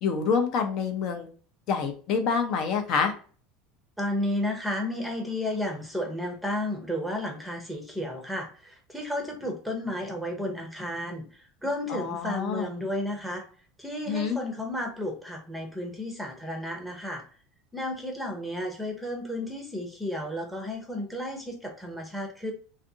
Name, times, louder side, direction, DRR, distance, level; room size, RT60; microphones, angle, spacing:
voice 1, 0.0-1.3 1.7-3.1 11.9-12.7 14.1-14.4, left 6 dB, 50° left, 5 dB, 0.5 m, -27 dB
voice 2, 4.0-13.4 13.8-17.2 17.7-22.5, left 1 dB, ahead, 2 dB, 0.7 m, -32 dB
2.5 x 2.4 x 2.7 m, 0.41 s
supercardioid pair, 150°, 0 cm